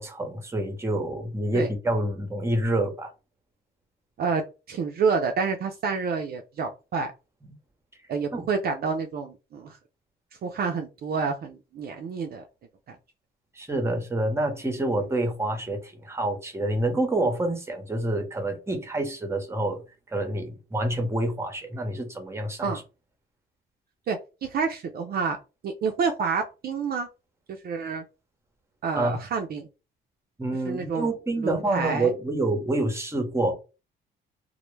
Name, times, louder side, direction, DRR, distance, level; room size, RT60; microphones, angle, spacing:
voice 1, 0.0-3.1 8.3-8.4 13.6-19.8 20.1-22.7 29.0-29.2 30.4-33.5, right 2 dB, 15° right, 0.7 m, -27 dB
voice 2, 4.7-7.1 8.1-9.8 10.4-12.4 12.9-13.0 22.6-22.8 24.1-25.4 25.6-27.1 27.6-28.0 28.8-29.7 30.7-31.1 31.4-32.1, right 5 dB, 50° right, 0.4 m, -28 dB
2.1 x 2.0 x 3.1 m
cardioid pair, 90°, 20 cm